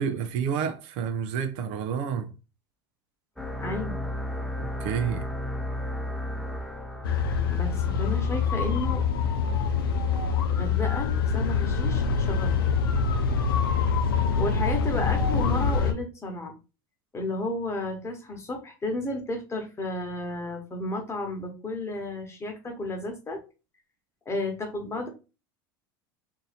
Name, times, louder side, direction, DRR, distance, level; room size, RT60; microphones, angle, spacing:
voice 1, 0.0-2.3 4.8-5.3, right 7 dB, 65° right, 0.6 m, -29 dB
sound 1, 3.4-8.6, left 1 dB, 5° left, 0.7 m, -34 dB
voice 2, 3.6-4.0 7.5-9.0 10.5-12.6 14.4-16.5 17.1-23.4 24.3-25.1, left 2 dB, 25° left, 1.1 m, -32 dB
sound 2, 7.0-15.9, left 5 dB, 85° left, 0.5 m, -25 dB
2.7 x 2.6 x 4.1 m
hypercardioid pair, 90°, 12 cm